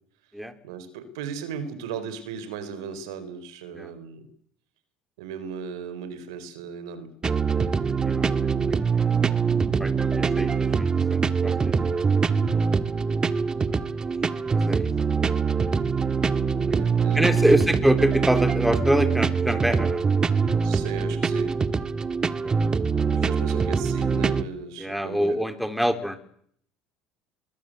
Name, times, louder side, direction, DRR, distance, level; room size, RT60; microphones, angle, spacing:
voice 1, 0.6-4.3 5.2-7.1 16.5-17.8 20.6-21.5 23.1-25.4, right 6 dB, 80° right, 12 dB, 4.3 m, -37 dB
sound 1, 7.2-24.4, right 5 dB, 30° right, 1.6 m, -23 dB
voice 2, 7.8-8.5 9.0-9.1 9.8-11.7 13.6-13.9 14.5-14.9 17.1-20.0 22.4-22.5 24.8-26.2, equal, ahead, 8 dB, 3.8 m, -25 dB
24.0 x 23.0 x 8.1 m, 0.65 s
hypercardioid pair, 75°, 3 cm